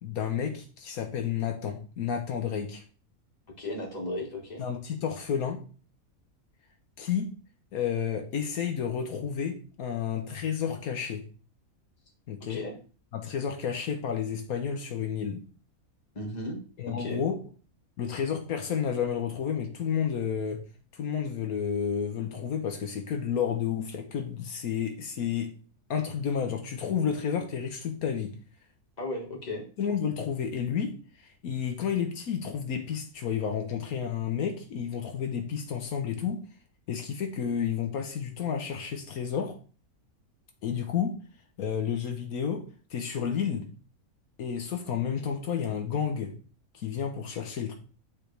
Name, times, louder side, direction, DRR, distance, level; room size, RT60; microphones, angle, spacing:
voice 1, 0.0-2.8 4.6-5.6 7.0-7.3 7.7-11.2 12.3-12.6 13.1-15.4 16.8-17.4 18.0-20.6 20.9-25.5 25.9-28.3 29.8-36.4 36.9-39.5 40.6-41.2 41.6-43.7 44.4-46.3 46.7-47.7, left 7 dB, 80° left, 4 dB, 1.3 m, -31 dB
voice 2, 3.6-4.6 12.5-12.7 16.1-16.6 16.9-17.2 29.0-29.6, left 1 dB, 30° left, -1 dB, 1.7 m, -35 dB
9.1 x 4.5 x 3.3 m, 0.38 s
omnidirectional pair, 1.5 m